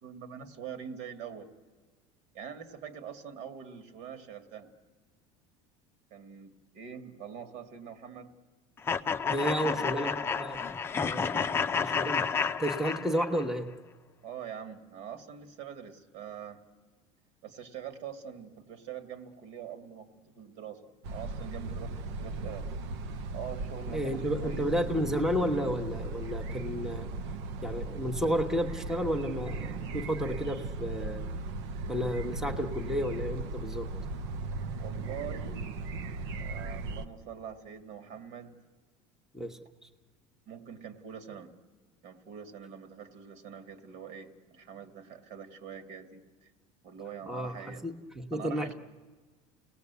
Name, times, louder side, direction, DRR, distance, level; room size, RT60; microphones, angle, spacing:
voice 1, 0.0-1.5 2.3-4.7 6.1-8.3 9.7-9.9 14.2-16.6 17.4-20.1 20.3-21.9 22.2-22.7 23.3-24.7 34.8-35.6 36.3-38.6 40.5-41.5 42.0-46.5 46.8-47.8 48.3-48.7, right 8 dB, 60° right, 9 dB, 2.4 m, -44 dB
sound 1, 8.9-13.5, left 6 dB, 15° left, 0.6 m, -30 dB
voice 2, 9.3-10.6 11.0-12.3 12.6-13.7 23.9-27.1 27.6-31.3 31.9-33.9 39.3-39.9 47.3-48.7, equal, 5° right, 4 dB, 1.2 m, -32 dB
sound 2, 21.0-37.1, right 3 dB, 85° right, 1.1 m, -37 dB
29.5 x 19.0 x 8.3 m, 1.4 s
cardioid pair, 145°, 14 cm